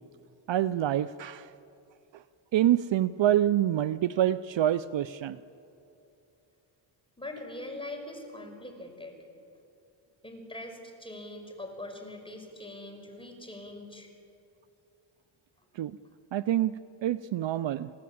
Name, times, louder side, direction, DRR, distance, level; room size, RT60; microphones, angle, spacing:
voice 1, 0.5-1.5 2.5-5.4 15.8-16.0 16.3-16.7 17.0-17.9, right 12 dB, 65° right, 16 dB, 0.6 m, -26 dB
voice 2, 7.2-9.2 10.2-14.1, left 1 dB, 10° left, 3 dB, 5.2 m, -42 dB
26.0 x 17.0 x 8.6 m, 2.7 s
cardioid pair, 75°, 49 cm